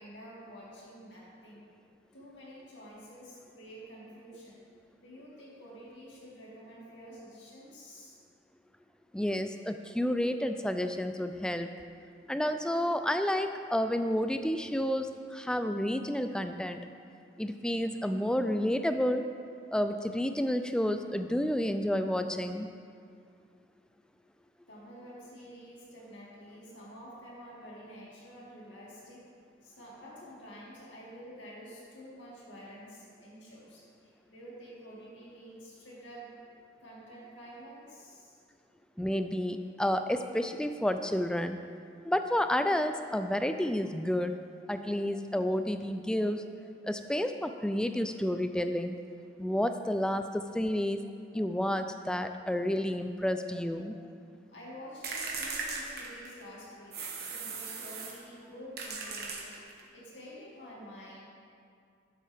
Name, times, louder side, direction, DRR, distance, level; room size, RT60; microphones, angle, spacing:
voice 1, 0.0-1.6 2.1-4.6 5.0-8.2 24.7-29.2 29.6-36.3 36.8-38.4 54.5-59.6 59.9-61.2, equal, 70° left, -5 dB, 2.5 m, -49 dB
voice 2, 9.1-11.7 12.3-16.8 17.4-19.3 19.7-22.7 39.0-41.6 42.0-44.4 44.7-46.5 46.8-49.0 49.4-51.0 51.3-54.0, left 1 dB, 5° left, 8 dB, 0.3 m, -30 dB
sound 1, 55.0-56.5 56.9-58.2 58.8-59.9, right 4 dB, 55° right, 1.2 m, -38 dB
12.0 x 7.2 x 3.5 m, 2.3 s
head